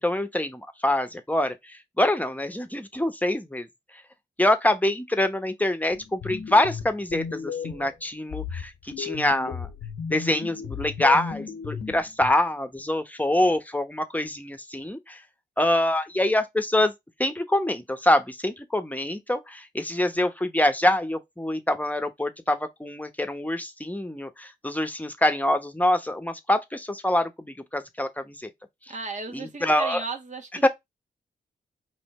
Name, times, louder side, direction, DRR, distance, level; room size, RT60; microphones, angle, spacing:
voice 1, 0.0-3.7 4.4-9.7 10.1-15.2 15.6-16.9 17.2-28.5 29.3-30.0 30.6-30.7, left 1 dB, 10° left, 1.2 m, -25 dB
sound 1, 5.9-7.9 8.3-12.3, left 7 dB, 85° left, 1.1 m, -35 dB
voice 2, 28.9-30.6, right 3 dB, 45° right, 1.7 m, -35 dB
5.1 x 2.9 x 3.7 m
cardioid pair, 60°, 17 cm